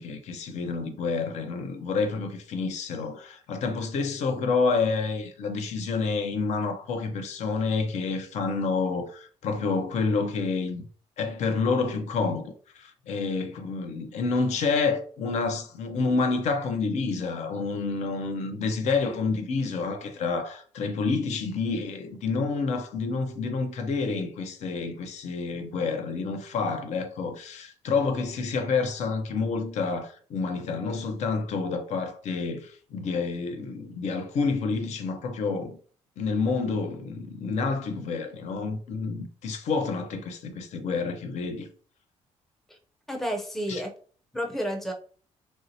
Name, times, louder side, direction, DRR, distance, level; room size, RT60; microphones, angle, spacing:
voice 1, 0.0-10.8 11.2-35.8 36.2-41.7 43.7-43.8, left 4 dB, 70° left, 0.6 m, -28 dB
voice 2, 43.1-43.9 44.3-44.9, equal, ahead, 0.5 m, -31 dB
3.2 x 2.7 x 2.7 m
cardioid pair, 100°, 12 cm